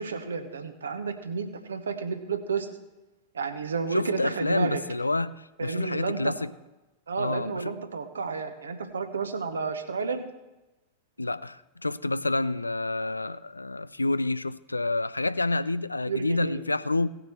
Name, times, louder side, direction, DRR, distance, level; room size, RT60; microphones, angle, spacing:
voice 1, 0.0-2.7 3.3-4.8 5.6-6.3 7.1-10.2 16.1-16.6, right 5 dB, 70° right, 1.0 m, -31 dB
voice 2, 3.9-6.5 7.2-7.8 11.2-17.1, left 2 dB, 80° left, 0.3 m, -28 dB
17.0 x 6.7 x 4.4 m
figure-of-eight pair, 90°, 0 cm